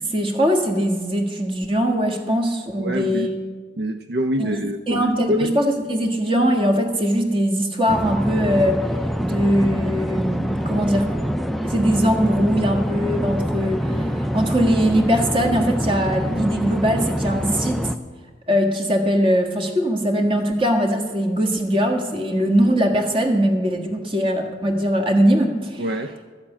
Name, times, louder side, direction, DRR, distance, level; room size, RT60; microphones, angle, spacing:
voice 1, 0.1-3.3 4.4-4.5 4.9-8.8 9.2-11.1 11.6-17.9 18.5-25.8, equal, 30° right, 4 dB, 1.5 m, -21 dB
voice 2, 2.8-3.3 3.8-5.5 25.8-26.1, equal, 65° right, 7 dB, 0.6 m, -25 dB
sound 1, 7.9-18.0, equal, ahead, 0.4 m, -25 dB
13.0 x 7.3 x 8.5 m, 1.5 s
head